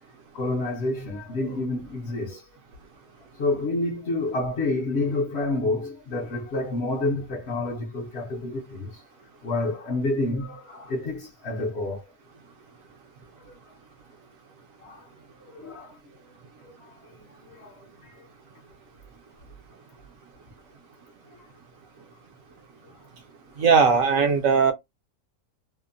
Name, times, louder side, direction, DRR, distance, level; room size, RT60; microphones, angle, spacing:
voice 1, 0.3-2.5 3.4-9.0 9.4-12.0 13.4-13.6 14.8-15.1 15.4-16.0 16.6-17.2 17.4-18.2 22.8-22.9, left 2 dB, 55° left, 0.8 m, -29 dB
voice 2, 23.6-24.7, right 5 dB, 70° right, 1.0 m, -19 dB
2.8 x 2.1 x 2.5 m
omnidirectional pair, 1.5 m